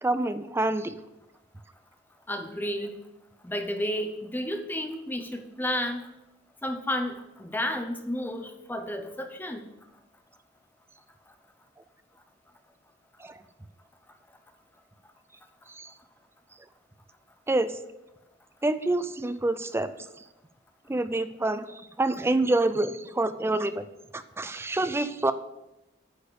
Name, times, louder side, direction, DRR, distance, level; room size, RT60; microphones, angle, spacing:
voice 1, 0.0-1.0 13.2-13.4 15.8-15.9 17.5-17.7 18.6-19.9 20.9-23.8 24.1-25.3, right 2 dB, 15° right, 12 dB, 0.4 m, -27 dB
voice 2, 2.3-3.0 3.4-6.1 6.6-9.7, left 1 dB, 10° left, 6 dB, 0.8 m, -32 dB
9.7 x 4.3 x 6.7 m, 0.94 s
head